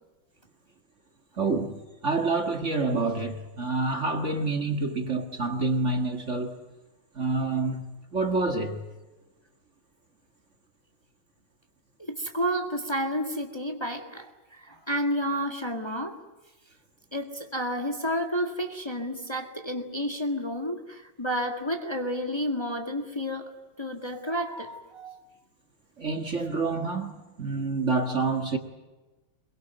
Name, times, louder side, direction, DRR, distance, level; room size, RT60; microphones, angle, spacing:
voice 1, 1.4-6.6 7.2-8.8 26.0-28.6, right 3 dB, 40° right, 1.9 m, -28 dB
voice 2, 12.0-14.3 14.7-16.2 17.1-23.5 23.8-25.2, equal, 15° left, 1.8 m, -30 dB
23.0 x 23.0 x 9.2 m
omnidirectional pair, 2.2 m